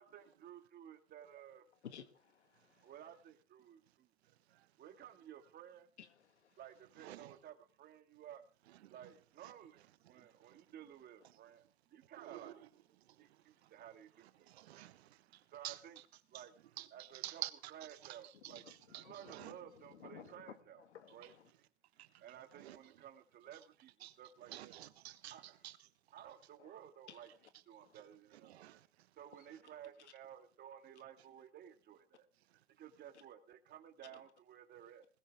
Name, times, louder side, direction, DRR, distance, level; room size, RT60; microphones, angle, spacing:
voice 1, 0.0-1.6 2.8-4.1 4.8-5.9 6.6-8.4 8.9-12.5 13.2-14.6 15.3-16.0 16.3-16.5 16.9-17.4 17.7-18.6 19.0-20.8 21.1-21.7 22.2-24.7 25.3-25.6 26.1-27.3 27.7-28.5 29.2-32.3 32.8-35.1, right 10 dB, 30° right, 2.1 m, -55 dB
voice 2, 1.8-3.0 6.0-6.6 18.3-21.5 26.6-26.8 27.1-27.2 27.8-27.9 29.4-29.6 30.0-30.1 33.1-33.2 34.0-34.2, left 8 dB, 90° left, 1.8 m, -57 dB
voice 3, 6.9-7.4 8.7-9.1 9.4-9.5 10.0-10.6 12.2-12.7 13.6-13.7 14.2-16.1 16.3-16.5 16.8-19.6 22.0-22.2 22.5-23.0 23.5-23.6 24.0-24.1 24.4-25.9 28.3-28.9, right 14 dB, 70° right, 1.3 m, -51 dB
20.5 x 14.0 x 3.5 m
hypercardioid pair, 120°, 33 cm